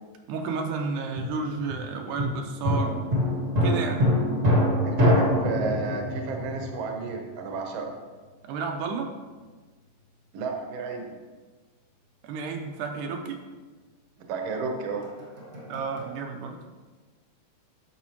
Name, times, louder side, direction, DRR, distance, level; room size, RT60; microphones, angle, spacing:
voice 1, 0.3-3.0 3.6-4.1 8.4-9.1 12.2-13.4 15.7-16.6, right 4 dB, 85° right, 3 dB, 2.2 m, -31 dB
sound 1, 1.2-7.5 15.0-16.2, equal, 35° right, 1.2 m, -26 dB
voice 2, 4.8-7.9 10.3-11.1 14.2-15.1, right 4 dB, 65° right, 2 dB, 1.7 m, -32 dB
10.0 x 6.5 x 3.0 m, 1.4 s
omnidirectional pair, 3.8 m